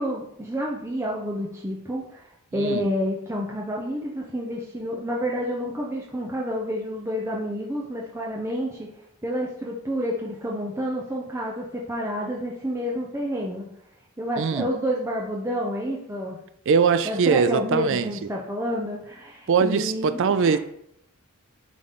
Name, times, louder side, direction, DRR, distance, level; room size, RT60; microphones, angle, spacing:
voice 1, 0.0-2.3 2.5-8.9 9.2-13.7 14.2-16.4 17.0-20.6, equal, 10° right, 0.7 m, -29 dB
voice 2, 2.6-2.9 14.4-14.7 16.7-18.1 19.5-20.6, right 5 dB, 55° right, 0.4 m, -21 dB
9.4 x 3.8 x 3.7 m
head